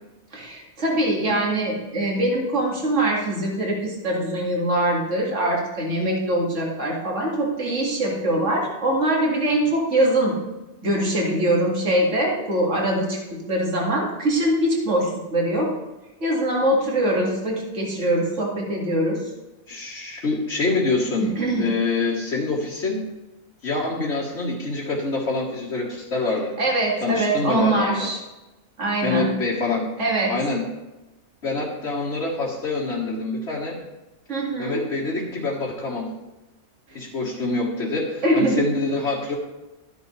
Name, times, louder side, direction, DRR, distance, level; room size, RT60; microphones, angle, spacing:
voice 1, 0.3-10.4 10.8-15.7 16.2-19.2 21.2-21.7 26.6-28.2 28.8-29.3 30.0-30.3 34.3-34.8 36.9-37.0 38.2-38.7, right 1 dB, 55° right, -2 dB, 2.4 m, -23 dB
voice 2, 19.7-21.3 21.6-23.1 23.6-26.5 27.0-28.1 29.0-29.9 30.3-30.7 31.4-33.8 34.6-36.1 37.0-39.4, left 3 dB, 55° left, -5 dB, 1.7 m, -25 dB
13.0 x 10.0 x 3.2 m, 1.0 s
omnidirectional pair, 1.5 m